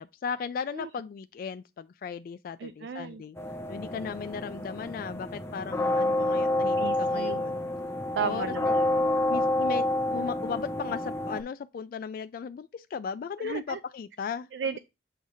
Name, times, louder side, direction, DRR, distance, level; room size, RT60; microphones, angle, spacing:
voice 1, 0.0-3.4 3.7-7.6 8.2-8.5 9.3-14.5, left 6 dB, 55° left, 0.3 m, -36 dB
voice 2, 2.6-3.2 6.8-7.4 8.2-9.0 13.4-13.8 14.5-14.8, right 6 dB, 75° right, 0.4 m, -34 dB
sound 1, 3.4-11.4, left 1 dB, 15° left, 0.8 m, -28 dB
7.8 x 2.7 x 4.8 m
head